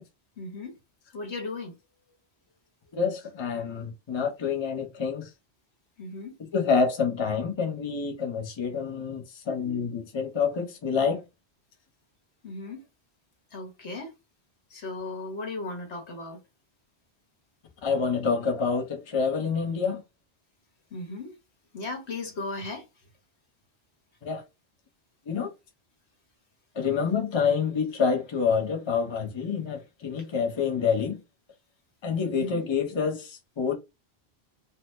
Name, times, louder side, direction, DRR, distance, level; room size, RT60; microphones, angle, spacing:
voice 1, 0.4-0.8 1.1-1.8 6.0-6.4 12.4-12.8 13.5-14.1 14.7-16.4 20.9-21.3 21.7-22.8 32.3-32.6, left 3 dB, 85° left, 1.4 m, -36 dB
voice 2, 2.9-5.3 6.5-11.2 17.8-20.0 24.2-24.4 25.3-25.5 26.7-31.2 32.0-33.7, left 5 dB, 30° left, 0.6 m, -27 dB
2.9 x 2.1 x 3.1 m
omnidirectional pair, 1.1 m